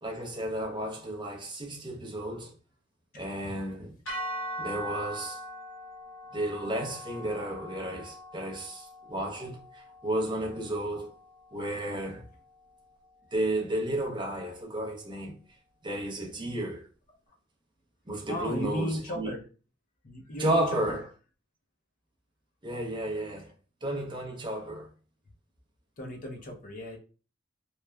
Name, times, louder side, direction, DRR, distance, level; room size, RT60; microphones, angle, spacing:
voice 1, 0.0-2.5 3.2-3.9 4.6-5.4 6.3-11.1 11.5-12.2 13.3-15.4 15.8-16.9 18.1-19.3 20.4-21.0 22.6-23.5 23.8-24.9, right 1 dB, 25° right, 0.6 m, -32 dB
sound 1, 4.1-12.3, right 1 dB, 80° left, 1.1 m, -42 dB
voice 2, 18.3-19.5 20.0-21.0 26.0-27.0, equal, 45° left, 0.6 m, -35 dB
3.0 x 2.1 x 2.2 m
head